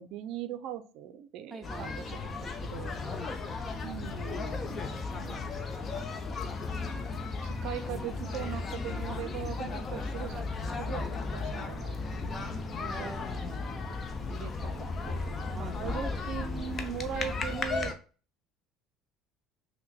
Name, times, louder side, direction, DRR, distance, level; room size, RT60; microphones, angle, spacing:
voice 1, 0.0-3.0 3.8-5.5 7.4-10.5 10.8-13.1 14.3-17.9, right 9 dB, 65° right, 0.4 m, -40 dB
voice 2, 1.5-2.1 3.0-3.4 12.8-14.0 15.5-16.1, right 1 dB, 15° right, 0.6 m, -44 dB
sound 1, 1.6-17.9, left 4 dB, 35° left, 0.7 m, -35 dB
5.6 x 2.1 x 2.3 m
hypercardioid pair, 65°, 0 cm